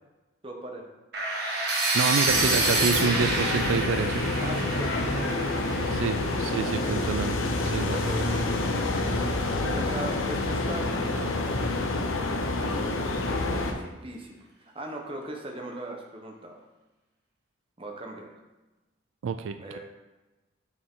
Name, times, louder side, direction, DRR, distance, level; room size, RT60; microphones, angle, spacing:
voice 1, 0.4-0.9 4.4-6.1 6.6-7.1 7.9-8.9 9.6-11.3 13.2-16.6 17.8-18.3 19.6-19.8, right 1 dB, 30° right, 2 dB, 1.0 m, -39 dB
sound 1, 1.1-7.0, right 2 dB, 55° right, 1.7 m, -28 dB
voice 2, 1.9-4.2 5.9-7.3 7.6-8.0 19.2-19.6, right 5 dB, 85° right, 10 dB, 0.4 m, -28 dB
sound 2, 2.3-13.7, left 2 dB, 85° left, 0.9 m, -28 dB
6.5 x 6.4 x 3.7 m, 1.1 s
head